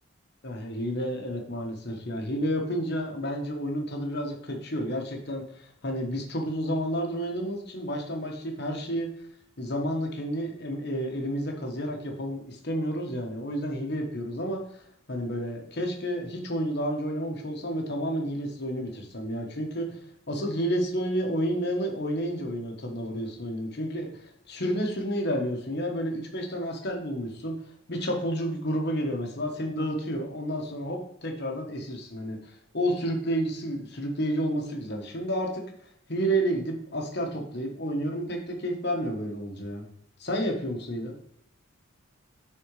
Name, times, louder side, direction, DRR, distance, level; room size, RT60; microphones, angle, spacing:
voice 1, 0.4-9.1 9.6-14.8 15.1-20.0 20.3-27.6 27.9-35.6 36.1-39.8 40.2-41.1, equal, 50° left, 2 dB, 1.3 m, -30 dB
10.5 x 4.2 x 3.2 m, 0.66 s
head